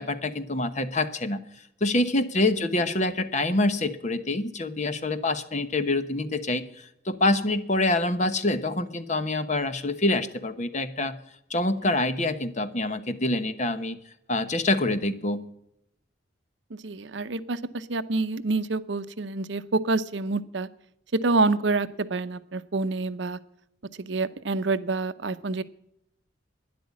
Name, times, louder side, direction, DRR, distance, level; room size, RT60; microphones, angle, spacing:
voice 1, 0.0-1.4 1.8-11.2 11.5-14.0 14.3-15.5, left 2 dB, 40° left, 11 dB, 1.1 m, -26 dB
voice 2, 16.7-20.7 21.1-23.4 24.0-25.6, right 3 dB, 65° right, 14 dB, 0.7 m, -27 dB
12.0 x 10.5 x 8.4 m, 0.78 s
head